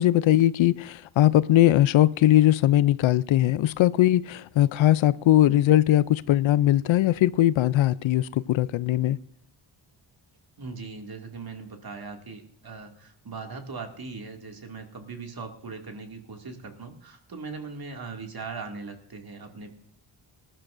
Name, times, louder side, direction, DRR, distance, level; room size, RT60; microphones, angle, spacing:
voice 1, 0.0-9.2, left 13 dB, 70° left, 0.6 m, -20 dB
voice 2, 10.6-19.7, right 4 dB, 45° right, 2.4 m, -39 dB
19.0 x 12.5 x 2.6 m
cardioid pair, 55°, 49 cm